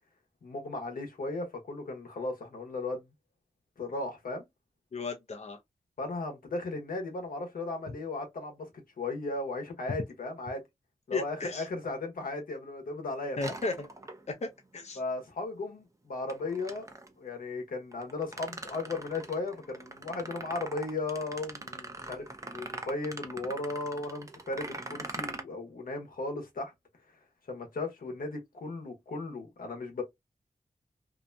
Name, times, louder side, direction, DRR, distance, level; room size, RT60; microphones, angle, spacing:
voice 1, 0.4-3.0 3.8-4.5 6.0-8.7 9.0-10.6 11.1-13.5 14.9-16.9 17.2-22.2 22.5-26.7 27.5-30.0, left 2 dB, 80° left, 1.0 m, -36 dB
voice 2, 4.9-5.6 11.1-11.7 13.4-13.9 14.3-15.0, left 3 dB, 50° left, 0.6 m, -35 dB
sound 1, 13.4-14.5 16.3-17.1 17.9-25.4, right 2 dB, 20° right, 0.6 m, -42 dB
2.7 x 2.1 x 2.5 m
cardioid pair, 40°, 14 cm